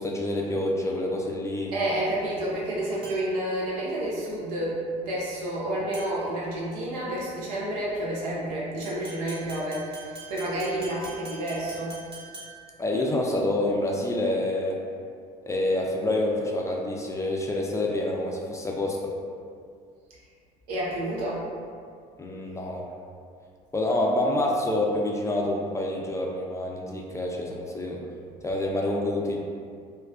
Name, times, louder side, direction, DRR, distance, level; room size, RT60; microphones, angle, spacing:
voice 1, 0.0-1.7 12.8-14.7 15.4-19.1 22.2-22.8 23.7-28.0 28.4-29.4, left 1 dB, 15° left, -1 dB, 0.3 m, -27 dB
voice 2, 1.7-12.0 20.7-21.5, right 1 dB, 85° right, -5 dB, 0.6 m, -30 dB
sound 1, 3.0-3.5 5.9-6.3 8.8-12.8, right 4 dB, 30° right, 0.9 m, -44 dB
2.5 x 2.2 x 2.2 m, 2.2 s
supercardioid pair, 75°, 19 cm